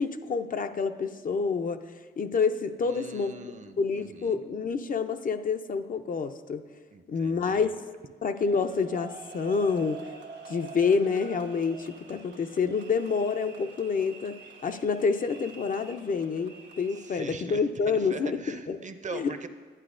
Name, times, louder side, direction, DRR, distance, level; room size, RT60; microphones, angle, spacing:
voice 1, 0.0-3.3 3.8-6.6 7.1-7.7 8.2-10.1 10.5-14.4 14.6-18.8 19.1-19.3, left 5 dB, 50° left, 8 dB, 0.5 m, -28 dB
voice 2, 2.8-4.4 6.9-7.7 17.0-17.6 17.9-19.5, right 4 dB, 40° right, 9 dB, 0.6 m, -42 dB
sound 1, 8.4-17.3, right 5 dB, 80° right, 1.3 m, -47 dB
11.0 x 9.8 x 2.5 m, 1.5 s
cardioid pair, 70°, 18 cm